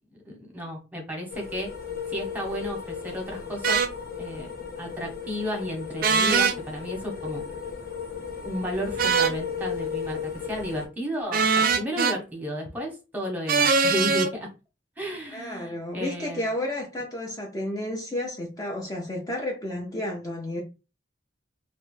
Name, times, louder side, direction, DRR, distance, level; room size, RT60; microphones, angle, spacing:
voice 1, 0.2-1.7 2.1-3.8 4.2-4.5 4.8-7.4 8.4-14.5 15.0-16.5, equal, 10° right, 0.9 m, -33 dB
sound 1, 1.3-10.9, left 7 dB, 50° left, 0.8 m, -35 dB
sound 2, 3.6-3.9 6.0-6.6 9.0-9.4 11.3-12.2 13.5-14.3, right 5 dB, 50° right, 0.4 m, -21 dB
voice 2, 15.3-20.6, left 1 dB, 20° left, 0.4 m, -32 dB
3.1 x 2.0 x 3.1 m
head